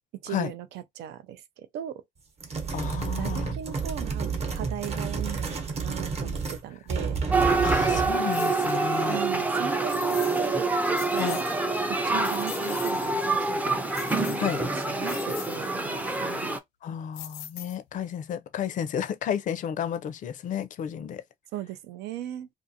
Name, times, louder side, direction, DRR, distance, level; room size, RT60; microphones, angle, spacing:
voice 1, 0.2-2.0 3.2-7.2 9.1-10.7 11.1-11.4 11.9-13.8 14.3-16.6 21.5-22.5, right 12 dB, 80° right, 0.5 m, -38 dB
sound 1, 2.4-6.6 6.9-8.2, right 5 dB, 40° right, 0.9 m, -30 dB
voice 2, 2.7-3.5 7.6-9.2 11.2-11.4 14.4-14.6 16.8-21.2, left 9 dB, 50° left, 0.5 m, -32 dB
sound 2, 7.3-16.6, right 3 dB, 10° right, 0.4 m, -26 dB
sound 3, 8.3-8.8 9.9-10.5 10.8-11.6 12.0-13.1 13.9-14.6 15.0-15.6 17.1-18.0, left 11 dB, 90° left, 0.7 m, -41 dB
2.5 x 2.4 x 2.7 m
cardioid pair, 110°, 17 cm